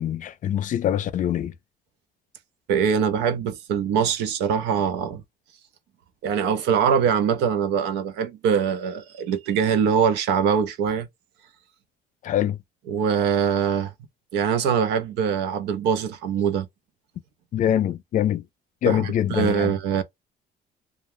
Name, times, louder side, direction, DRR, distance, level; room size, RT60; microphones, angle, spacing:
voice 1, 0.0-1.5 12.2-12.6 17.5-18.4 18.8-19.7, left 10 dB, 50° left, 0.5 m, -24 dB
voice 2, 2.7-5.2 6.2-11.1 12.9-13.9 14.3-16.7 18.8-20.0, right 7 dB, 85° right, 0.7 m, -23 dB
2.4 x 2.0 x 3.0 m
cardioid pair, 110°, 17 cm